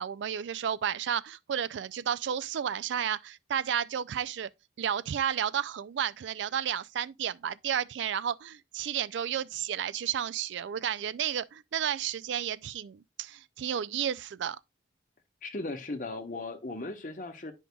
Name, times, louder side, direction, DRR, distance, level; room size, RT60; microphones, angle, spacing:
voice 1, 0.0-4.5 4.8-14.6, right 9 dB, 75° right, 0.3 m, -32 dB
voice 2, 15.4-17.5, left 2 dB, 45° left, 1.0 m, -37 dB
9.8 x 5.4 x 2.3 m
head